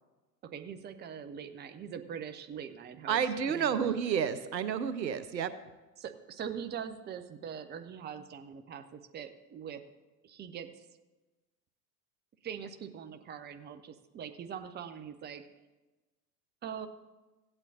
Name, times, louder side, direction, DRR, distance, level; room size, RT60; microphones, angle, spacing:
voice 1, 0.4-4.0 6.0-9.8 10.2-10.9 12.4-15.5 16.6-16.9, right 8 dB, 20° right, 9 dB, 0.7 m, -42 dB
voice 2, 3.1-5.5, right 7 dB, 85° right, 12 dB, 0.8 m, -30 dB
16.0 x 8.8 x 2.8 m, 1.1 s
figure-of-eight pair, 85°, 49 cm